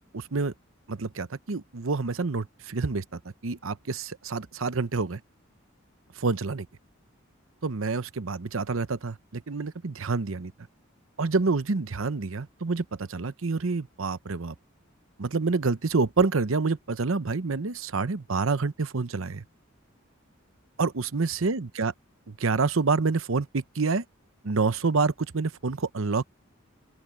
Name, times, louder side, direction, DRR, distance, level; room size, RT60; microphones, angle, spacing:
voice 1, 0.1-0.5 0.9-5.2 6.2-6.7 7.6-10.5 11.2-14.5 15.2-19.4 20.8-21.9 22.3-24.0 24.4-26.2, right 4 dB, 75° right, 0.8 m, -27 dB
open air
head